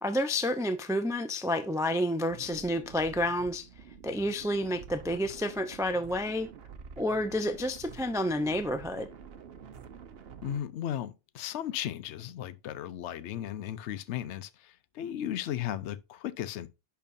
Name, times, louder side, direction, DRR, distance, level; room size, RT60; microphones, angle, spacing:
voice 1, 0.0-3.7 4.0-6.5 7.0-9.1, left 1 dB, 5° right, 0.4 m, -30 dB
sound 1, 2.3-10.6, right 6 dB, 60° right, 1.0 m, -48 dB
voice 2, 10.4-16.7, left 11 dB, 75° left, 0.9 m, -36 dB
10.5 x 4.6 x 2.6 m
omnidirectional pair, 1.2 m